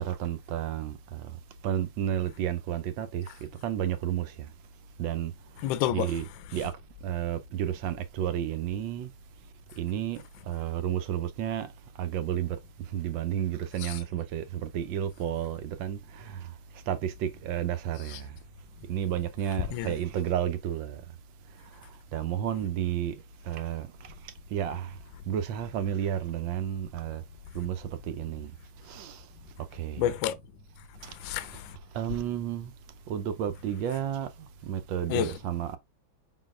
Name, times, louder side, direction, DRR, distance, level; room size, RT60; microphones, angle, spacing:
voice 1, 0.0-1.4 1.6-3.3 3.6-4.5 5.0-5.3 5.9-6.7 7.0-9.1 9.8-11.7 12.0-12.6 12.9-16.5 16.9-18.4 18.9-21.0 22.1-23.2 23.4-25.0 25.3-27.2 27.5-28.5 28.8-29.2 29.7-30.1 31.0-31.1 31.9-32.7 33.1-35.8, right 10 dB, 75° right, 1.3 m, -32 dB
voice 2, 5.6-6.1 13.8-14.0 18.1-18.2 19.7-19.9 30.0-30.4 31.0-31.8 35.1-35.4, left 12 dB, 75° left, 1.2 m, -30 dB
5.6 x 3.8 x 2.4 m
omnidirectional pair, 2.2 m